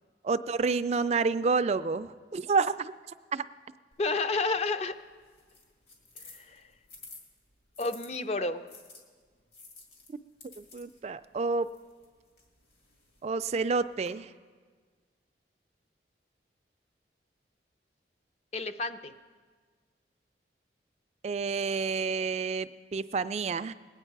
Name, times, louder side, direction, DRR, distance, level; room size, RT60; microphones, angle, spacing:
voice 1, 0.2-2.9 3.3-3.4 10.1-10.2 10.6-11.7 13.2-14.3 21.2-23.7, right 4 dB, 35° right, 12 dB, 0.3 m, -29 dB
sound 1, 3.9-8.1 8.7-14.1, left 3 dB, 65° left, 2.4 m, -54 dB
voice 2, 4.0-4.9 6.3-6.6 7.8-8.6 18.5-19.1, left 3 dB, 35° left, 10 dB, 0.5 m, -30 dB
20.0 x 9.0 x 4.7 m, 1.5 s
head